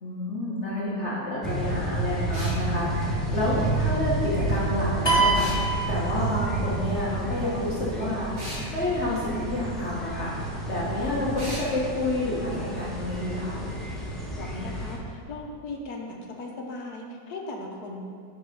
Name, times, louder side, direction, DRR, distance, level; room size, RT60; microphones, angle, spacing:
voice 1, 0.0-5.5 5.9-10.4 10.7-13.7, left 1 dB, 45° left, -7 dB, 1.5 m, -29 dB
sound 1, 1.4-14.9, right 1 dB, ahead, 1.1 m, -30 dB
sound 2, 2.3-2.6 5.3-5.6 8.4-8.7 11.4-11.7, equal, 85° right, 2.6 m, -37 dB
sound 3, 5.1-6.8, right 3 dB, 15° left, 1.5 m, -24 dB
voice 2, 14.3-18.0, left 2 dB, 65° left, 1 dB, 1.5 m, -37 dB
9.6 x 4.7 x 5.2 m, 2.2 s
omnidirectional pair, 1.8 m